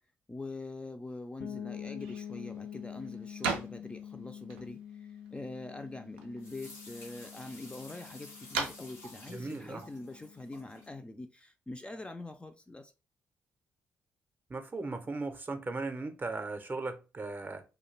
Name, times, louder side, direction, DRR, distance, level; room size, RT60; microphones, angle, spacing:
voice 1, 0.3-12.9, left 2 dB, 15° left, 0.4 m, -44 dB
sound 1, 1.4-11.1, left 9 dB, 75° left, 0.5 m, -47 dB
sound 2, 1.8-10.9, right 5 dB, 85° right, 0.4 m, -43 dB
sound 3, 6.4-10.9, left 1 dB, 90° left, 0.9 m, -52 dB
voice 2, 9.3-9.8 14.5-17.6, right 3 dB, 30° right, 0.6 m, -37 dB
2.3 x 2.2 x 3.1 m
hypercardioid pair, 40°, 6 cm